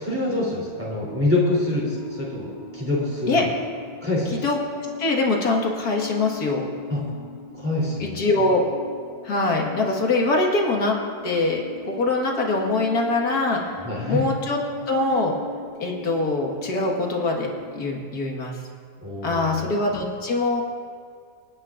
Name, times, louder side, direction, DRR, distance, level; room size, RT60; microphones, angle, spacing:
voice 1, 0.0-2.5 2.7-3.4 4.0-4.4 6.9-7.0 7.5-8.2 13.8-14.2 19.0-19.6, left 2 dB, 10° right, -6 dB, 3.2 m, -25 dB
sound 1, 1.0-17.8, left 3 dB, 60° left, 2.0 m, -39 dB
voice 2, 4.3-6.7 8.0-8.6 9.2-11.0 11.2-13.6 14.1-14.6 14.9-15.3 15.8-18.5 19.2-20.6, left 2 dB, 80° left, 0 dB, 2.2 m, -23 dB
27.0 x 9.7 x 2.5 m, 2.1 s
omnidirectional pair, 1.6 m